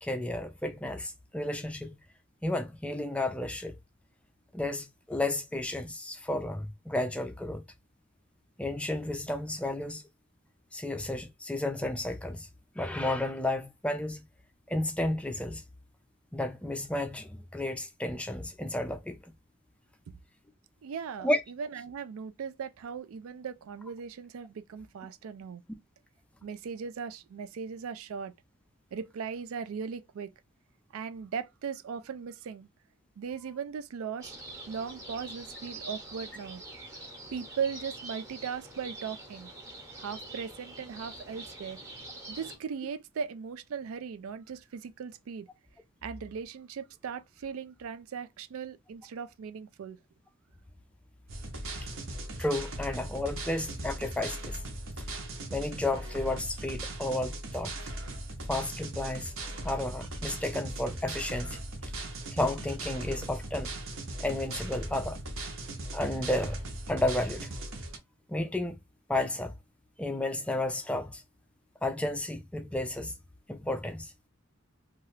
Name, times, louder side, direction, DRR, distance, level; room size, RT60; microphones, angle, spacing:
voice 1, 0.0-1.9 2.4-3.8 4.5-7.6 8.6-10.0 10.7-12.5 12.8-14.2 14.7-15.6 16.3-19.3 21.2-21.4 52.4-54.6 55.5-57.7 58.5-59.3 59.6-61.6 62.3-63.7 64.2-65.2 65.9-66.6 66.9-67.5 68.3-68.8 69.1-69.5 70.0-71.2 71.8-73.1 73.5-74.1, left 1 dB, 5° left, 0.3 m, -32 dB
voice 2, 20.8-25.6 26.4-28.3 28.9-30.3 30.9-32.7 33.2-34.3 34.7-36.6 37.3-39.5 40.0-41.8 42.3-45.5 46.0-50.0, right 6 dB, 85° right, 0.4 m, -38 dB
sound 1, 34.2-42.6, right 2 dB, 15° right, 0.8 m, -45 dB
sound 2, 51.3-68.0, right 2 dB, 70° right, 0.8 m, -39 dB
2.8 x 2.4 x 3.1 m
head